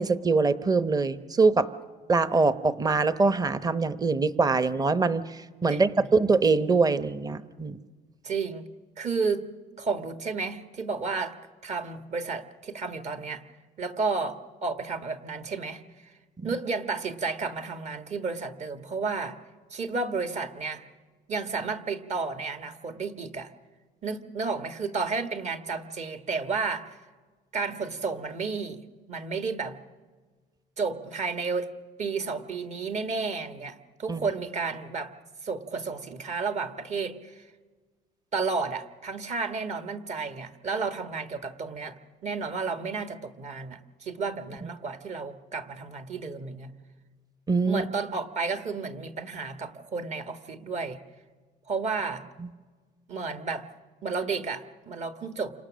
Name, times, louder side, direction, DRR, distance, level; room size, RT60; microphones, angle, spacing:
voice 1, 0.0-1.7 2.1-5.2 5.6-7.8 16.4-16.5 34.1-34.2 47.5-47.8 52.4-52.5, right 4 dB, 20° right, 12 dB, 0.9 m, -23 dB
voice 2, 5.7-6.0 8.2-8.7 9.0-9.5 9.8-11.4 11.6-13.4 13.8-16.1 16.4-19.4 19.7-20.8 21.3-23.5 24.0-27.0 27.5-29.8 30.8-31.7 32.0-35.1 35.4-37.5 38.3-46.7 47.7-51.0 51.7-52.2 53.1-53.6 54.0-55.5, right 4 dB, 45° right, 8 dB, 1.5 m, -32 dB
29.0 x 26.0 x 6.4 m, 1.5 s
cardioid pair, 110°, 17 cm